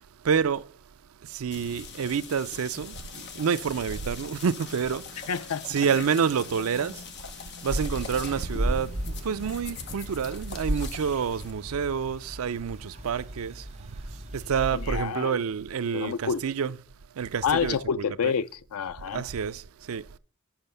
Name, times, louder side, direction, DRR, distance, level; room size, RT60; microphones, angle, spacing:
voice 1, 0.2-0.7 1.3-5.2 5.7-7.0 7.6-13.7 14.3-16.7 17.2-17.8 18.2-18.3 19.1-20.1, right 6 dB, 80° right, 0.4 m, -28 dB
sound 1, 1.5-11.5, left 5 dB, 55° left, 0.9 m, -42 dB
voice 2, 5.3-5.7 14.7-15.4 15.9-16.4 17.4-19.3, left 6 dB, 90° left, 0.4 m, -28 dB
sound 2, 7.7-15.0, right 1 dB, 30° right, 1.4 m, -35 dB
7.2 x 5.6 x 6.7 m
head